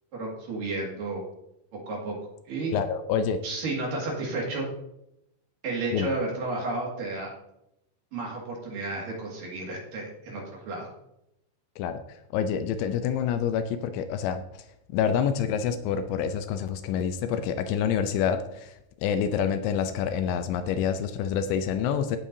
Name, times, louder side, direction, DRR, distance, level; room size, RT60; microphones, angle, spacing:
voice 1, 0.1-1.2 1.9-2.1 2.5-2.7 3.4-4.7 5.6-7.3 8.1-10.9, right 2 dB, 55° right, -2 dB, 3.2 m, -32 dB
voice 2, 2.7-3.4 5.9-6.1 11.8-12.0 12.3-14.6 14.9-18.7 19.0-22.2, left 8 dB, 80° left, 9 dB, 2.8 m, -27 dB
16.5 x 7.4 x 2.7 m, 0.83 s
omnidirectional pair, 5.3 m